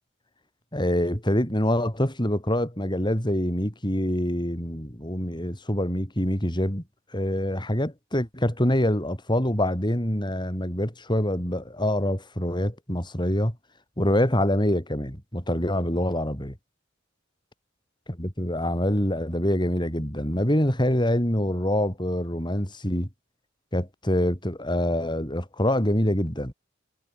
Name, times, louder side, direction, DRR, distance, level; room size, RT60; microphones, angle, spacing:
voice 1, 0.7-6.8 7.1-13.6 14.0-16.6 18.1-23.1 23.7-26.5, left 1 dB, 25° left, 6.9 m, -25 dB
head